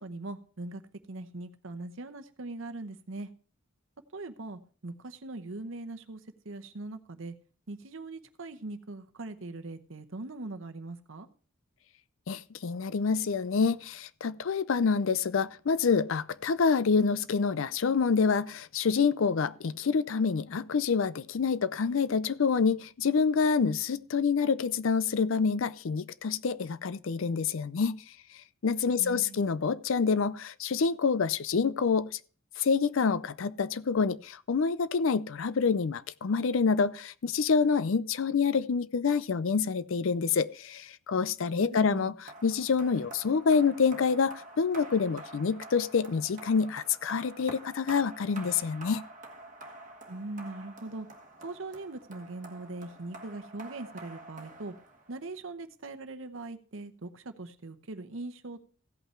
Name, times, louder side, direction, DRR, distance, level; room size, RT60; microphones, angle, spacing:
voice 1, 0.0-0.8 1.1-3.3 4.1-6.2 6.4-7.3 7.7-11.3 29.0-29.4 41.6-42.1 50.1-51.1 51.4-54.7 55.1-58.7, right 2 dB, 65° right, 0.9 m, -41 dB
voice 2, 12.3-28.0 28.6-32.1 32.6-49.0, left 5 dB, 65° left, 0.5 m, -27 dB
sound 1, 42.3-55.3, right 2 dB, 35° right, 1.5 m, -48 dB
15.5 x 5.6 x 4.4 m
head